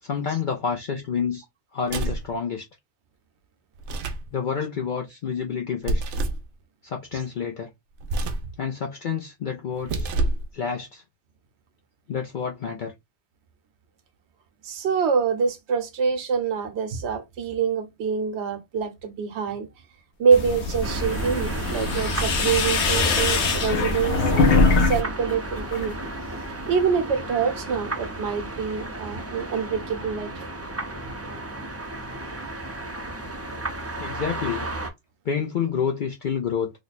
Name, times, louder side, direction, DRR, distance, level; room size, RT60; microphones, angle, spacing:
voice 1, 0.0-1.4 1.7-2.7 4.3-6.0 6.8-7.7 8.6-10.1 10.5-11.0 12.1-12.9 34.0-34.7 35.2-36.7, left 6 dB, 55° left, 0.6 m, -28 dB
sound 1, 1.8-2.3 3.8-4.3 5.8-6.5 8.0-8.5 9.8-10.5, right 2 dB, 90° right, 0.9 m, -27 dB
voice 2, 14.6-19.7 20.2-25.9 26.7-30.5, right 6 dB, 70° right, 1.0 m, -25 dB
sound 2, 20.3-25.0 25.3-25.9, left 3 dB, 75° left, 1.1 m, -22 dB
sound 3, 20.8-34.9, right 1 dB, 20° right, 0.4 m, -34 dB
3.1 x 2.2 x 4.0 m
omnidirectional pair, 1.2 m